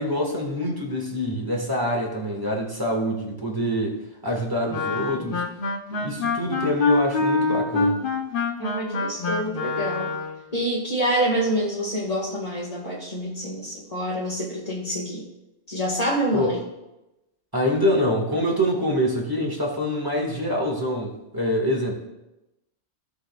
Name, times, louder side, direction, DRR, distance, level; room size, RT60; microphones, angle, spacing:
voice 1, 0.0-4.0 4.2-5.4 6.0-8.0 16.3-16.5 17.5-21.9, equal, 20° right, 0 dB, 1.7 m, -25 dB
Wind instrument woodwind instrument, 4.7-10.4, left 3 dB, 55° left, 0.9 m, -25 dB
voice 2, 8.6-10.1 10.5-15.3 15.7-16.6, right 1 dB, 35° left, -7 dB, 1.7 m, -27 dB
17.5 x 6.4 x 2.4 m, 0.96 s
omnidirectional pair, 1.2 m